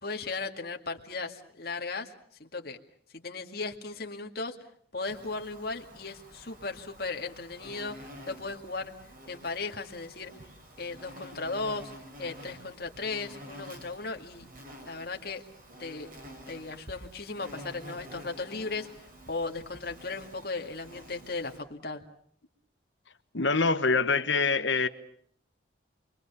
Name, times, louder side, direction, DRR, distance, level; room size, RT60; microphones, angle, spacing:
voice 1, 0.0-2.1 2.4-2.8 3.1-4.6 4.9-8.9 9.3-10.3 10.8-11.9 12.2-14.5 14.8-15.4 15.8-16.1 16.5-18.9 19.3-22.0, left 3 dB, 50° left, 3 dB, 2.3 m, -36 dB
Insect, 5.1-21.6, equal, 45° right, 5.8 m, -49 dB
voice 2, 23.3-24.9, left 4 dB, 75° left, 10 dB, 1.4 m, -25 dB
28.5 x 23.0 x 7.1 m, 0.64 s
head